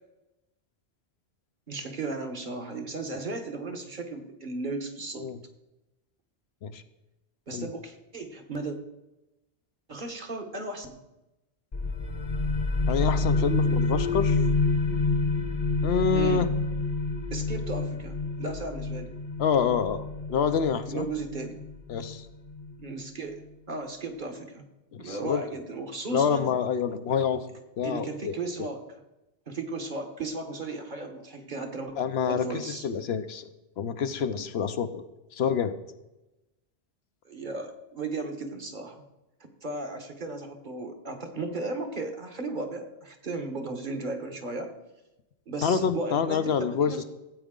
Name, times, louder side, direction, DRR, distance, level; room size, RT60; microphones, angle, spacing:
voice 1, 1.7-5.3 7.5-8.8 9.9-11.0 16.1-16.5 17.3-19.1 20.9-21.6 22.8-24.6 25.0-26.5 27.8-28.8 29.5-31.9 32.3-32.8 37.2-39.0 39.6-44.7 45.5-47.0, right 3 dB, 50° right, 5 dB, 1.3 m, -35 dB
sound 1, 11.7-23.1, left 3 dB, 35° left, 0.9 m, -28 dB
voice 2, 12.9-14.4 15.8-16.5 19.4-20.0 20.3-21.1 21.9-22.3 24.9-25.4 26.1-27.5 27.8-28.4 32.0-33.4 33.8-35.0 35.3-35.7 45.6-47.0, left 6 dB, 75° left, 10 dB, 0.9 m, -27 dB
14.0 x 8.2 x 3.7 m, 0.97 s
omnidirectional pair, 1.1 m